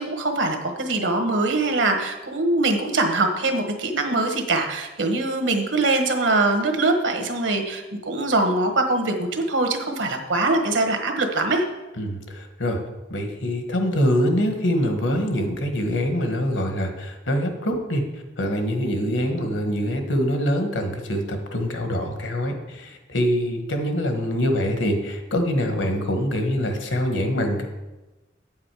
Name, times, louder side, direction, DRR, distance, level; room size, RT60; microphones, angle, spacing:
voice 1, 0.0-11.6, right 2 dB, 85° right, 5 dB, 1.4 m, -23 dB
voice 2, 12.0-12.8 13.1-27.7, equal, 80° left, 5 dB, 1.4 m, -24 dB
8.3 x 7.4 x 4.8 m, 1.1 s
head